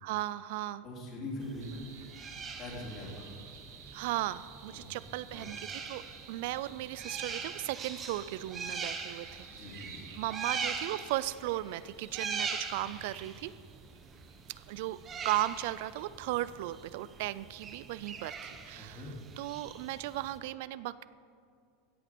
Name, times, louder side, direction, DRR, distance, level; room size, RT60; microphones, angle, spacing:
voice 1, 0.0-0.8 3.9-6.0 6.3-9.8 10.2-13.5 14.5-15.0 15.2-19.1 19.4-21.1, right 15 dB, 65° right, 17 dB, 0.3 m, -36 dB
voice 2, 0.8-1.8 2.6-3.3 4.7-5.5 6.6-6.7 9.5-10.2 12.8-12.9 18.8-19.1, left 1 dB, 40° left, -3 dB, 3.5 m, -43 dB
sound 1, 1.4-20.4, right 5 dB, 25° right, 1.1 m, -42 dB
sound 2, 1.6-16.0, right 7 dB, 85° right, 1.5 m, -54 dB
16.5 x 6.1 x 6.0 m, 2.3 s
supercardioid pair, 135°, 0 cm